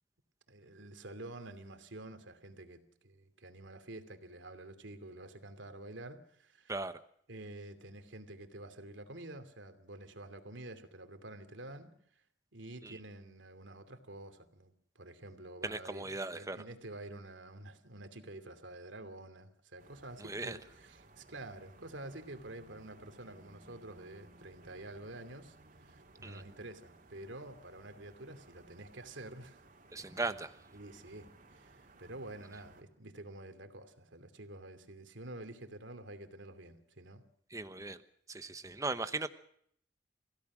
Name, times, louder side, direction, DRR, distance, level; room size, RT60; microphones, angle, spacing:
voice 1, 0.5-6.7 7.3-11.9 12.5-16.1 16.3-29.6 30.0-30.3 30.7-37.2, right 2 dB, 90° right, 9 dB, 2.8 m, -49 dB
voice 2, 6.7-7.0 12.8-13.0 15.6-16.6 20.2-20.6 26.2-26.4 29.9-30.5 37.5-38.0 38.3-39.3, right 3 dB, 20° right, 10 dB, 1.1 m, -38 dB
sound 1, 19.8-32.8, right 2 dB, 45° right, 3.6 m, -60 dB
29.5 x 16.5 x 6.3 m, 0.66 s
head